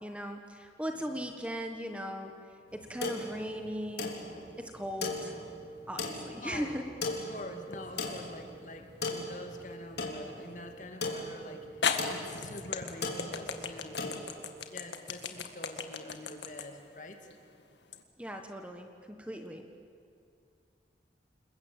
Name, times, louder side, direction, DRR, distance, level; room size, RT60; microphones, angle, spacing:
voice 1, 0.0-2.3 2.7-4.2 4.6-5.3 5.9-6.9 18.2-19.6, equal, 5° right, 5 dB, 1.4 m, -38 dB
voice 2, 0.9-1.2 5.1-5.5 6.4-14.2 14.7-17.2, left 1 dB, 45° left, 5 dB, 2.3 m, -46 dB
sound 1, 2.7-14.2, left 2 dB, 75° left, 3.5 m, -38 dB
sound 2, 7.7-8.3 9.1-9.2 11.1-11.2 11.8-18.0, left 6 dB, 90° left, 1.8 m, -36 dB
29.0 x 21.0 x 8.8 m, 2.3 s
head